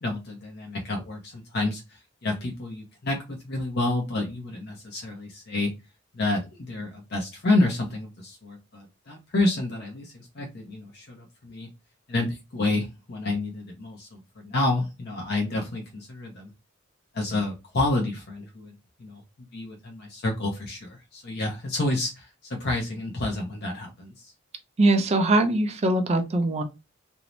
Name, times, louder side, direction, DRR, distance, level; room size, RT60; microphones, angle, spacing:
voice 1, 0.0-5.7 6.1-11.7 12.1-16.5 17.1-18.7 19.0-19.2 19.5-24.3, left 2 dB, 50° left, 0.6 m, -29 dB
voice 2, 24.8-26.6, right 2 dB, 30° right, 0.4 m, -22 dB
2.5 x 2.0 x 3.0 m
head